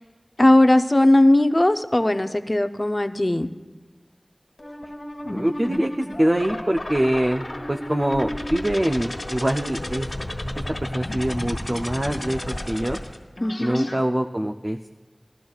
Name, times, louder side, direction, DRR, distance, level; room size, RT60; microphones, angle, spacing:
voice 1, 0.4-3.5 13.4-13.9, left 1 dB, 35° left, 8 dB, 0.5 m, -18 dB
sound 1, 4.6-13.9, left 1 dB, 65° left, 1.5 m, -32 dB
voice 2, 5.3-10.1 10.8-13.0 13.6-14.9, right 1 dB, 35° right, 4 dB, 0.5 m, -24 dB
19.0 x 12.5 x 2.4 m, 1.3 s
wide cardioid pair, 50°, 0 cm